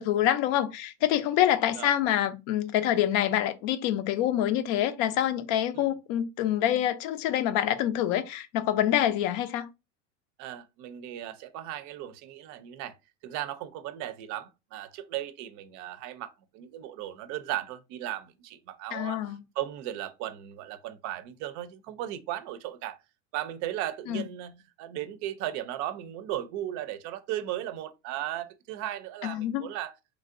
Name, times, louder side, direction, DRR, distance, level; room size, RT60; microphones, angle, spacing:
voice 1, 0.0-9.7 18.9-19.4 24.1-24.3 29.2-29.7, left 11 dB, 55° left, 0.6 m, -26 dB
voice 2, 10.4-13.0 13.2-19.3 19.6-23.0 23.3-30.0, right 12 dB, 50° right, 0.5 m, -36 dB
3.2 x 2.6 x 2.5 m
supercardioid pair, 105°, 37 cm